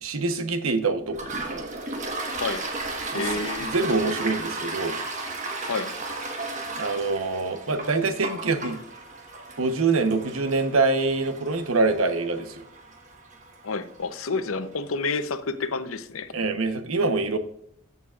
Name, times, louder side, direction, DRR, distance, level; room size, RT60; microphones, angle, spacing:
voice 1, 0.0-1.7 3.1-3.2 3.6-5.0 6.8-8.8 9.6-12.6 16.3-17.4, right 3 dB, 90° right, 9 dB, 1.0 m, -25 dB
Toilet flush, 1.1-14.5, right 3 dB, 35° right, 1.4 m, -35 dB
voice 2, 3.1-3.7 5.7-5.9 13.6-16.3, left 4 dB, 85° left, 11 dB, 0.8 m, -29 dB
14.0 x 6.9 x 2.5 m, 0.71 s
head